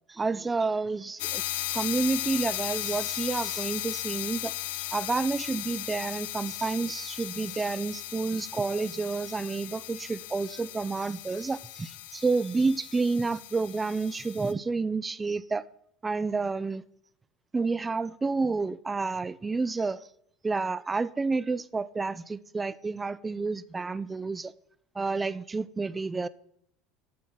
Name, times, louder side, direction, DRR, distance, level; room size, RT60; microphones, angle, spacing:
voice 1, 0.1-1.4 1.7-4.5 4.9-15.6 16.0-16.8 17.5-20.1 20.4-24.5 25.0-26.3, right 4 dB, 20° right, 0.4 m, -30 dB
sound 1, 1.2-14.5, left 15 dB, 75° left, 0.4 m, -36 dB
7.4 x 4.4 x 5.6 m
hypercardioid pair, 75°, 0 cm